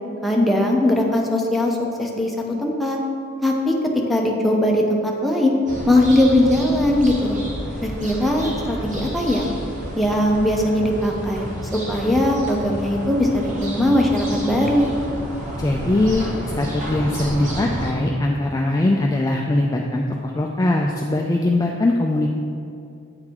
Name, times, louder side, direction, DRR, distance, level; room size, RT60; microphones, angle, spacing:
voice 1, 0.2-2.3 2.6-3.0 3.4-3.7 4.1-5.5 5.9-7.4 7.8-9.5 9.9-11.4 11.7-14.9, left 1 dB, ahead, -1 dB, 0.7 m, -20 dB
sound 1, 5.7-17.9, equal, 40° right, 1.0 m, -30 dB
voice 2, 15.6-16.3 16.6-22.3, left 2 dB, 15° left, 0 dB, 0.3 m, -21 dB
8.6 x 3.8 x 4.5 m, 2.5 s
head